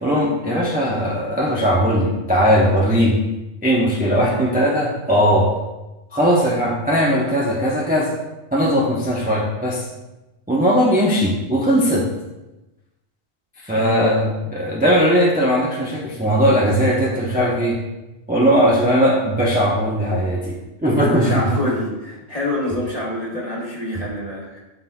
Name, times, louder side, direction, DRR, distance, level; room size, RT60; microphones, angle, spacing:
voice 1, 0.0-3.2 3.6-5.5 6.1-8.1 8.5-9.9 10.5-12.0 13.6-17.8 18.3-20.5 20.8-21.5, equal, 10° right, -5 dB, 0.8 m, -18 dB
voice 2, 4.2-4.5 13.7-14.1 21.1-24.6, left 1 dB, 30° left, -4 dB, 1.3 m, -26 dB
11.5 x 4.0 x 2.3 m, 1.0 s
omnidirectional pair, 1.3 m